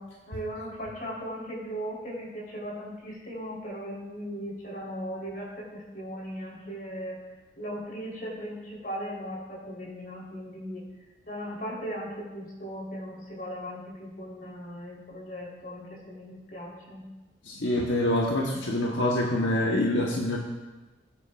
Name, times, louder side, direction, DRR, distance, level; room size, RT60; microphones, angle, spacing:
voice 1, 0.0-7.2 7.6-10.9 11.3-17.1, equal, 45° left, -4 dB, 4.3 m, -38 dB
voice 2, 17.4-20.4, left 1 dB, 85° left, -2 dB, 1.4 m, -26 dB
20.0 x 8.7 x 2.6 m, 1.1 s
head